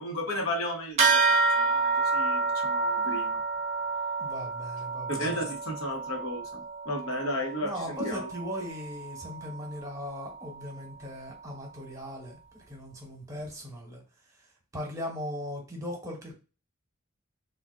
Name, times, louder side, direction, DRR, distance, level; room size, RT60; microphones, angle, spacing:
voice 1, 0.0-3.4 5.1-8.3, left 1 dB, 90° left, 1 dB, 1.1 m, -34 dB
sound 1, 1.0-10.8, right 4 dB, 30° right, 0.6 m, -29 dB
voice 2, 4.2-5.5 7.6-14.0 14.7-16.4, left 1 dB, 15° right, 0 dB, 1.0 m, -38 dB
3.6 x 2.4 x 2.3 m, 0.33 s
head